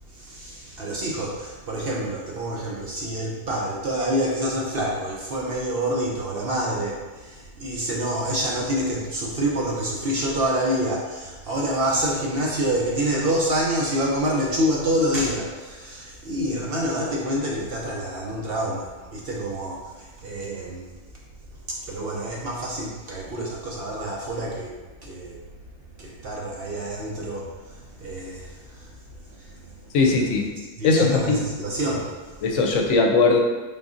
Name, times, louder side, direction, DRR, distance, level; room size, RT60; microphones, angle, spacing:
voice 1, 0.1-20.9 21.7-25.4 26.0-28.9 29.2-29.7 30.1-30.5 30.8-32.4, right 1 dB, 60° right, -3 dB, 0.6 m, -27 dB
voice 2, 29.9-30.4 30.8-31.4 32.4-33.4, left 3 dB, 85° left, 1 dB, 1.0 m, -19 dB
3.9 x 3.6 x 2.5 m, 1.3 s
omnidirectional pair, 1.4 m